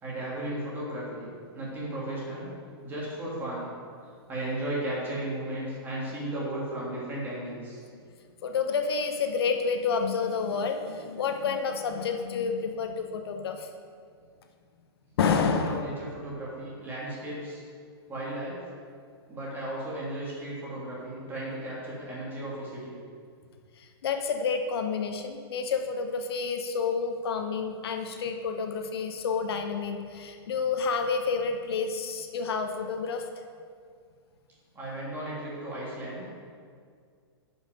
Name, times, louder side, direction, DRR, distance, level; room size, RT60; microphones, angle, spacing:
voice 1, 0.0-2.5 2.8-3.7 4.3-7.8 15.5-17.6 18.1-18.6 19.3-23.0 34.7-36.3, right 1 dB, 15° right, -6 dB, 2.5 m, -35 dB
voice 2, 8.4-13.7 15.2-15.8 23.8-33.2, left 5 dB, 65° left, 5 dB, 0.8 m, -29 dB
10.0 x 5.5 x 5.2 m, 2.1 s
hypercardioid pair, 155°, 14 cm